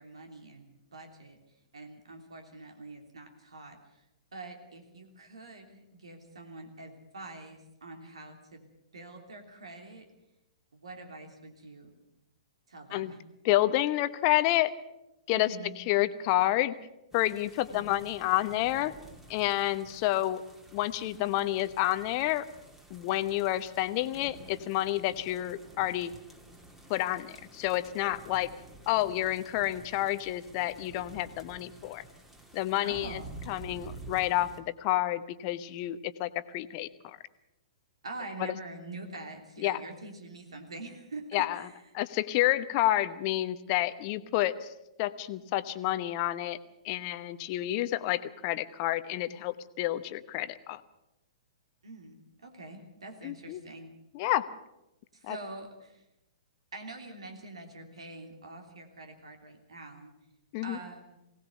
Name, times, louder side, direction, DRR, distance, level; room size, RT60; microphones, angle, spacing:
voice 1, 0.0-1.4 1.7-4.0 4.3-8.7 8.9-10.1 10.7-12.0 12.7-13.2 15.3-15.8 17.7-18.0 32.8-33.3 38.0-41.8 51.8-53.9 55.1-56.0 56.7-60.1 60.6-61.2, right 2 dB, 70° right, 4 dB, 3.1 m, -45 dB
voice 2, 13.4-14.7 15.3-16.7 17.1-18.9 19.3-20.4 20.7-22.5 22.9-26.1 26.9-28.5 28.9-32.0 32.5-37.2 38.4-38.5 39.6-39.8 41.3-41.6 41.9-44.7 45.0-46.6 46.8-50.8 53.2-53.6 54.1-54.5 55.2-55.4 60.5-60.8, left 15 dB, 35° left, 13 dB, 1.0 m, -29 dB
sound 1, 17.1-34.6, right 2 dB, 10° right, 2.4 m, -51 dB
21.0 x 18.0 x 6.8 m, 0.89 s
figure-of-eight pair, 110°, 3 cm